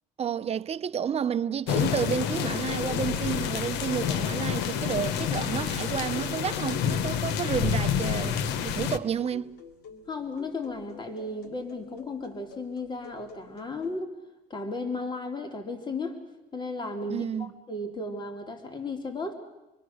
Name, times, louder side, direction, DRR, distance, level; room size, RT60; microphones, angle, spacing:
voice 1, 0.2-9.6 17.1-17.5, right 8 dB, 35° right, 0.8 m, -31 dB
sound 1, 1.7-9.0, left 8 dB, 90° left, 1.1 m, -28 dB
sound 2, 8.4-14.0, left 6 dB, 75° left, 2.9 m, -49 dB
voice 2, 10.1-14.1 14.5-16.2 16.5-19.3, left 2 dB, 25° left, 2.7 m, -35 dB
27.5 x 23.0 x 6.5 m
cardioid pair, 110°, 17 cm